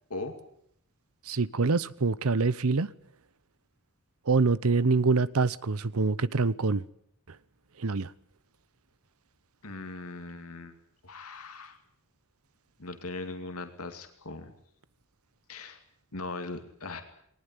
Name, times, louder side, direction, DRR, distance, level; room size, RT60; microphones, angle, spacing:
voice 1, 1.2-2.9 4.3-6.8 7.8-8.1, right 4 dB, 80° right, 0.9 m, -25 dB
voice 2, 9.6-10.7 11.0-11.8 12.8-14.5 15.5-15.8 16.1-17.0, left 3 dB, 85° left, 2.6 m, -39 dB
20.5 x 19.5 x 9.8 m
head